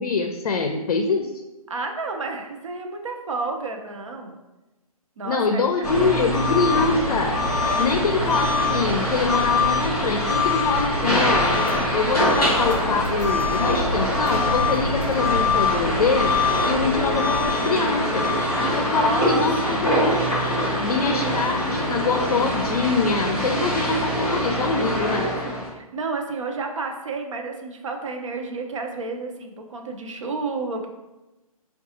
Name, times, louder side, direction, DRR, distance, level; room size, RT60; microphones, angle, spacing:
voice 1, 0.0-1.3 5.3-7.3 7.8-11.5 11.9-16.4 16.7-18.3 18.7-20.2 20.8-25.3, left 4 dB, 75° left, 4 dB, 0.5 m, -24 dB
voice 2, 1.7-4.4 5.2-6.1 15.6-15.8 18.9-20.1 21.1-21.6 24.9-30.9, right 3 dB, 55° right, 4 dB, 0.6 m, -31 dB
sound 1, 5.8-17.5, equal, 30° left, 0.7 m, -33 dB
sound 2, 5.8-25.7, left 1 dB, ahead, 0.3 m, -23 dB
4.5 x 2.3 x 2.8 m, 1.0 s
hypercardioid pair, 165°, 19 cm